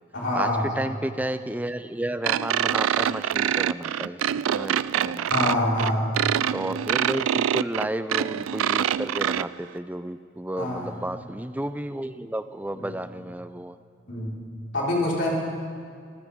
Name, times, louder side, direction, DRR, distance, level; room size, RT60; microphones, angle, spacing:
voice 1, 0.1-0.7 5.3-6.2 10.6-11.1 12.7-12.9 14.1-14.4 14.7-15.3, left 1 dB, 65° left, -5 dB, 4.8 m, -26 dB
voice 2, 0.8-5.3 6.5-13.8, right 1 dB, 10° right, 12 dB, 0.4 m, -32 dB
sound 1, 2.2-9.4, right 10 dB, 85° right, 0.3 m, -25 dB
25.5 x 15.5 x 3.7 m, 2.3 s
head